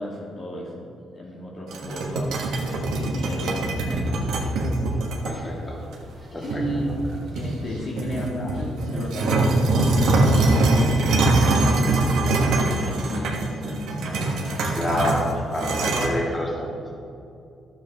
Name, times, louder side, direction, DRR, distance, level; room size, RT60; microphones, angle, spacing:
voice 1, 0.0-2.3 2.7-4.3 6.4-7.1 7.3-15.2 15.7-16.3, left 1 dB, 50° left, -4 dB, 1.8 m, -34 dB
sound 1, 1.7-5.3 5.9-6.0 6.5-7.6 8.0-16.1, right 2 dB, 80° right, 1.4 m, -23 dB
voice 2, 5.2-5.8 6.3-6.6 8.4-8.5 14.7-16.9, left 1 dB, 20° left, -3 dB, 2.3 m, -28 dB
13.0 x 7.3 x 3.5 m, 2.6 s
cardioid pair, 90°, 0 cm